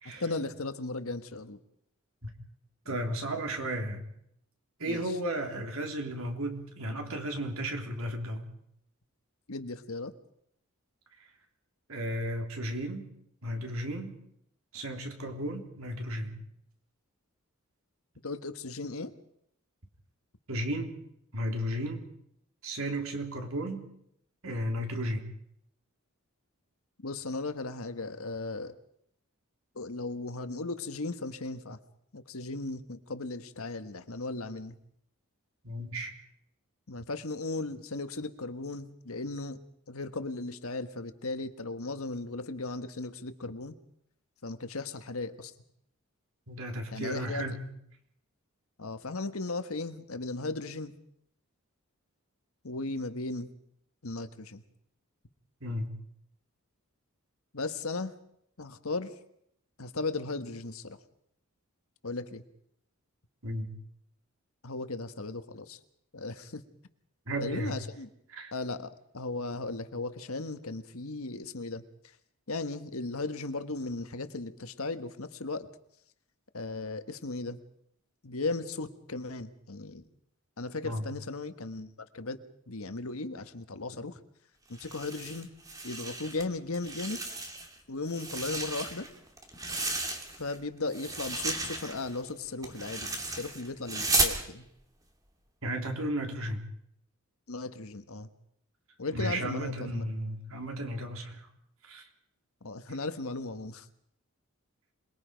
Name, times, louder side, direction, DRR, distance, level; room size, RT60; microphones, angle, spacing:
voice 1, 0.2-1.6 4.8-5.2 9.5-10.1 18.2-19.1 27.0-28.7 29.7-31.8 32.1-34.7 36.9-39.6 39.9-43.7 44.4-45.5 46.9-47.4 48.8-50.9 52.6-53.5 54.0-54.6 57.5-58.1 58.6-59.1 59.8-61.0 62.0-62.4 64.6-65.8 66.1-66.6 67.4-68.1 68.5-71.8 72.5-75.7 76.5-77.6 78.2-80.0 80.6-82.4 82.7-84.2 84.7-85.5 85.8-87.2 87.9-89.1 90.4-94.7 97.5-98.3 99.0-100.0 102.6-103.9, left 3 dB, 75° left, 10 dB, 1.4 m, -36 dB
voice 2, 2.8-4.0 4.8-8.5 11.9-13.1 13.4-14.1 14.7-16.4 20.5-21.0 21.3-22.0 22.6-23.8 24.4-25.3 35.6-36.1 46.5-47.6 55.6-55.9 63.4-63.7 67.3-67.8 68.3-68.5 80.8-81.1 95.6-96.6 99.1-101.5 101.8-102.0, right 1 dB, 70° right, 4 dB, 3.3 m, -34 dB
sound 1, 84.7-86.4 86.7-87.7 88.1-90.6 90.9-94.4, right 2 dB, 15° right, 2.3 m, -34 dB
27.0 x 21.0 x 5.2 m, 0.72 s
head